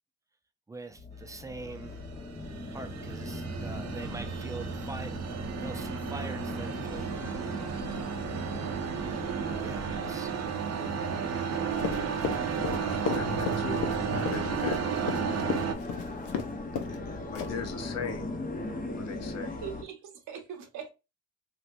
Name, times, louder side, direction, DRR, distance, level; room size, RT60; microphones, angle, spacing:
voice 1, 0.7-2.0 2.7-5.3 5.6-7.5 9.6-10.4, right 3 dB, 10° right, 0.5 m, -43 dB
sound 1, 0.9-19.8, left 2 dB, 30° left, 0.8 m, -40 dB
sound 2, 1.6-15.7, right 6 dB, 60° right, 0.7 m, -33 dB
Run, 11.8-16.5 16.8-17.0 17.3-17.7, left 7 dB, 85° left, 0.6 m, -33 dB
voice 2, 12.4-16.0 16.9-18.4 18.9-19.6, left 6 dB, 60° left, 0.8 m, -40 dB
voice 3, 19.6-20.9, right 8 dB, 85° right, 0.9 m, -41 dB
3.3 x 2.8 x 2.5 m
cardioid pair, 90°, 30 cm